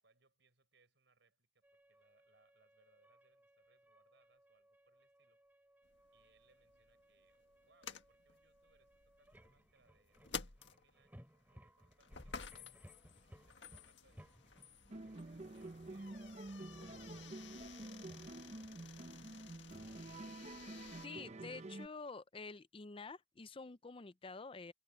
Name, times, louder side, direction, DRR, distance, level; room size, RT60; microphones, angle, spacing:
voice 1, 0.0-5.4 6.1-12.8 13.2-14.4 14.8-19.9, right 3 dB, 70° right, 6.6 m, -76 dB
sound 1, 1.6-19.4, equal, 10° right, 5.5 m, -64 dB
sound 2, 5.8-21.1, left 6 dB, 75° left, 1.7 m, -53 dB
sound 3, 14.9-21.9, right 2 dB, 40° right, 0.8 m, -49 dB
voice 2, 21.0-24.7, left 4 dB, 30° left, 0.6 m, -49 dB
head